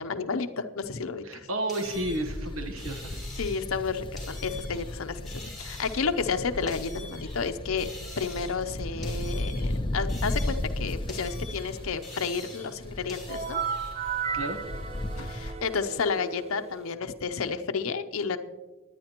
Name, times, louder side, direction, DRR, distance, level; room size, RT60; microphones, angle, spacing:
voice 1, 0.0-1.5 3.4-7.9 8.2-13.6 15.2-18.4, left 5 dB, 70° left, 8 dB, 0.7 m, -31 dB
voice 2, 1.2-3.2 14.0-14.1 14.3-14.6, right 1 dB, 80° right, 6 dB, 1.2 m, -32 dB
sound 1, 1.7-3.8 4.2-5.0 5.3-7.5 7.8-8.7 9.0-10.8 11.1-13.9, left 2 dB, ahead, 3.5 m, -45 dB
sound 2, 1.9-15.5, left 1 dB, 25° left, 0.6 m, -35 dB
sound 3, 13.3-16.9, right 6 dB, 30° right, 0.6 m, -34 dB
20.5 x 9.6 x 3.0 m, 1.2 s
head